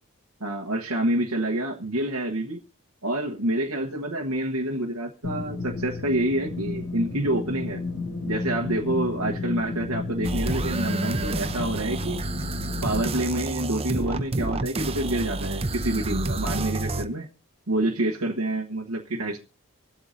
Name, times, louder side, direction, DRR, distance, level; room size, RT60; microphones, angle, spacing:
voice 1, 0.4-2.6 3.0-7.8 8.3-12.2 12.8-17.3 17.7-19.4, right 1 dB, 80° right, 1.3 m, -27 dB
sound 1, 5.2-13.0, left 3 dB, 85° left, 6.1 m, -33 dB
sound 2, 10.2-17.0, right 2 dB, 25° right, 0.7 m, -29 dB
24.5 x 8.2 x 2.7 m
head